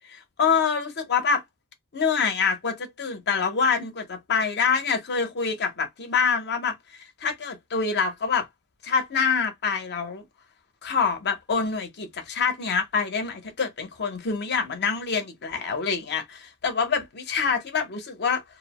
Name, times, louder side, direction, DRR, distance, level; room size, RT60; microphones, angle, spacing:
voice 1, 0.1-1.4 1.9-8.5 8.8-10.2 10.8-18.4, left 5 dB, 50° left, 0.8 m, -26 dB
2.7 x 2.0 x 2.8 m
head